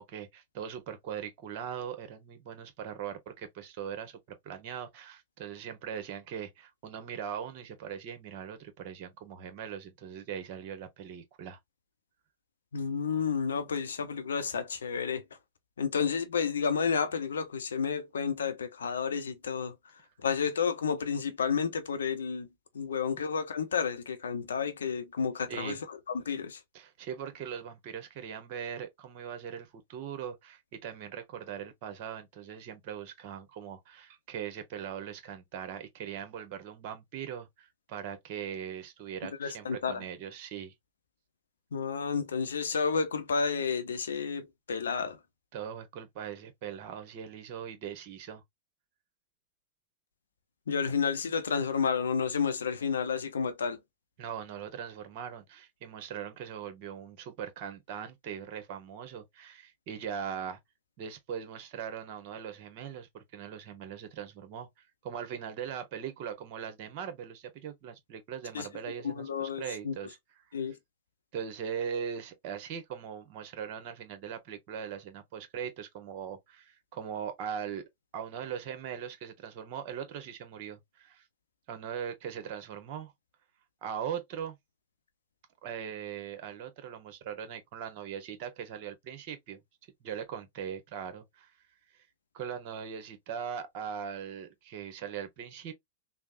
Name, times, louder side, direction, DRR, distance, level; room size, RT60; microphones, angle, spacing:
voice 1, 0.0-11.6 25.5-25.8 26.7-40.7 45.5-48.4 54.2-60.6 61.0-64.7 65.0-70.2 71.3-77.8 78.1-81.2 81.7-83.1 83.8-84.6 85.6-89.6 90.0-91.5 92.3-95.7, right 8 dB, 50° right, 0.9 m, -40 dB
voice 2, 12.7-15.2 15.8-19.8 20.2-22.5 22.7-26.6 39.4-40.0 41.7-45.2 50.7-53.8 68.5-68.7 69.0-70.0 70.5-70.8, left 6 dB, 80° left, 0.6 m, -31 dB
3.4 x 2.0 x 2.5 m
hypercardioid pair, 105°, 0 cm